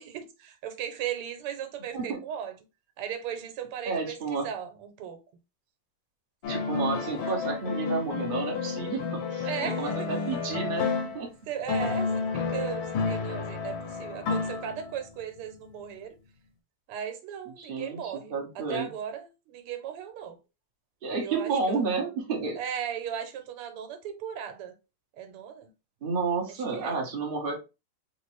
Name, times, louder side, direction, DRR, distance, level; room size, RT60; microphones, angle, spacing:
voice 1, 0.0-2.6 3.0-5.2 9.4-10.3 11.5-16.2 16.9-20.4 21.2-21.9 22.6-24.7 25.2-25.7 26.5-27.0, right 8 dB, 85° right, 1.7 m, -37 dB
voice 2, 3.8-4.5 6.5-9.5 9.8-10.9 11.1-11.3 17.6-18.9 21.0-22.6 26.0-27.6, right 4 dB, 45° right, 0.7 m, -31 dB
sound 1, 6.4-11.3 11.7-15.0, left 5 dB, 90° left, 1.5 m, -31 dB
4.0 x 2.5 x 3.1 m
omnidirectional pair, 2.4 m